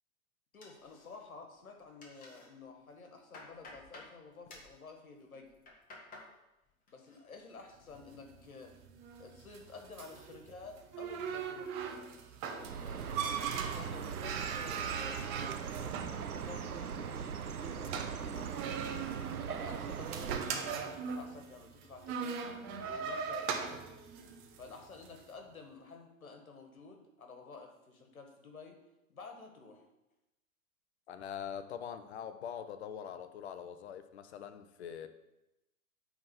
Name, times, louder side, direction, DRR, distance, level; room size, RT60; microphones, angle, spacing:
voice 1, 0.5-5.5 6.9-8.7 9.2-11.7 12.4-13.1 13.6-19.1 19.5-22.4 22.8-23.8 24.6-28.8 29.1-29.8, left 4 dB, 75° left, 4 dB, 1.6 m, -51 dB
sound 1, 0.6-1.4 1.7-2.5 2.9-4.1 4.5-4.8 5.4-6.3 6.7-7.2 7.5-8.0, left 2 dB, 20° left, 1.4 m, -53 dB
sound 2, 8.0-25.2, right 6 dB, 25° right, 0.7 m, -41 dB
Chirp tweet, 12.6-20.4, right 7 dB, 85° right, 0.6 m, -40 dB
voice 2, 31.1-35.1, left 8 dB, 50° left, 10 dB, 0.7 m, -43 dB
8.7 x 3.7 x 5.6 m, 0.94 s
figure-of-eight pair, 110°, 43 cm